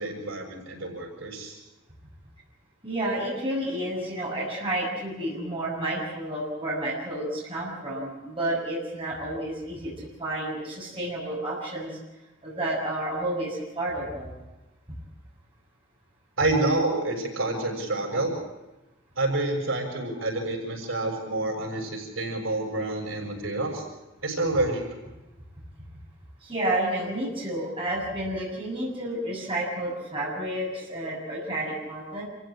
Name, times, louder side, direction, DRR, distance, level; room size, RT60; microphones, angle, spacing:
voice 1, 0.0-1.6 16.4-18.3 19.2-23.8 24.2-24.8, right 2 dB, 90° right, 1 dB, 6.8 m, -28 dB
voice 2, 2.8-9.9 10.2-12.0 12.4-14.3 26.4-32.2, right 1 dB, 25° right, -4 dB, 7.0 m, -30 dB
27.5 x 15.5 x 8.7 m, 1.0 s
head